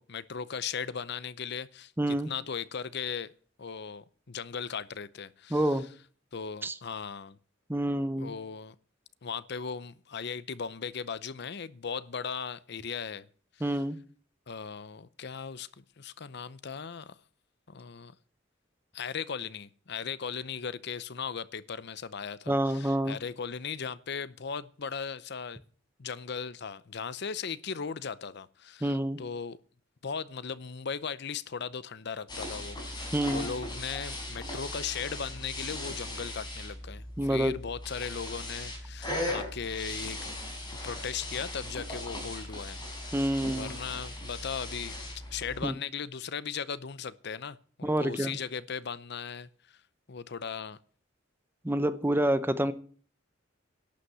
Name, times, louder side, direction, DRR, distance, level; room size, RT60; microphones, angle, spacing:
voice 1, 0.0-3.3 3.6-5.8 6.3-7.4 8.2-8.7 9.2-13.3 13.7-13.8 14.5-15.7 16.0-17.2 17.7-18.1 18.9-25.6 26.0-29.6 30.0-40.2 40.8-42.8 43.5-45.0 45.3-49.5 50.1-50.8, left 6 dB, 60° left, 0.7 m, -37 dB
voice 2, 2.0-2.3 5.5-5.8 6.6-6.7 7.7-8.3 13.6-14.0 22.5-23.2 28.8-29.2 33.1-33.5 37.2-37.5 43.1-43.7 45.6-45.7 47.8-48.4 51.6-52.7, right 1 dB, 10° right, 0.8 m, -27 dB
sound 1, 32.3-45.7, left 1 dB, 20° left, 4.8 m, -38 dB
11.5 x 8.4 x 7.9 m
head